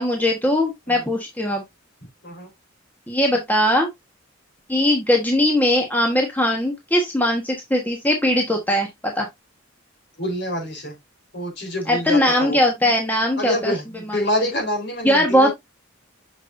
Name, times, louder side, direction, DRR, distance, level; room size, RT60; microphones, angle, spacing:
voice 1, 0.0-1.6 3.1-3.9 4.7-9.3 11.9-13.7 14.1-14.2 15.0-15.5, left 1 dB, 10° left, 1.2 m, -20 dB
voice 2, 10.2-10.9 11.3-12.6 13.4-15.5, left 1 dB, 55° left, 4.0 m, -26 dB
6.9 x 6.3 x 2.5 m
head